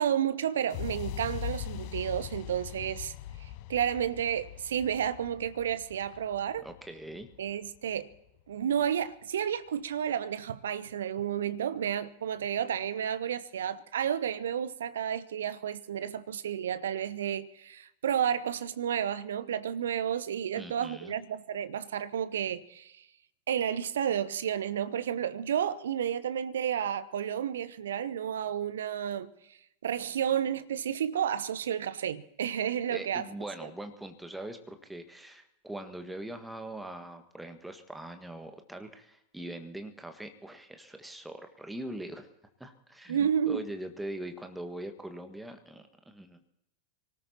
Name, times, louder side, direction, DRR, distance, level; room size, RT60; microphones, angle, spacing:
voice 1, 0.0-3.1 3.4-6.7 7.4-8.1 8.5-23.1 23.5-33.3 43.1-43.7, right 9 dB, 65° right, 0.7 m, -31 dB
sound 1, 0.7-8.6, left 12 dB, 45° left, 0.7 m, -41 dB
voice 2, 6.6-7.3 20.5-21.1 32.9-42.3 42.6-46.4, right 1 dB, 5° right, 1.6 m, -42 dB
25.5 x 18.5 x 2.9 m
figure-of-eight pair, 90°, 0 cm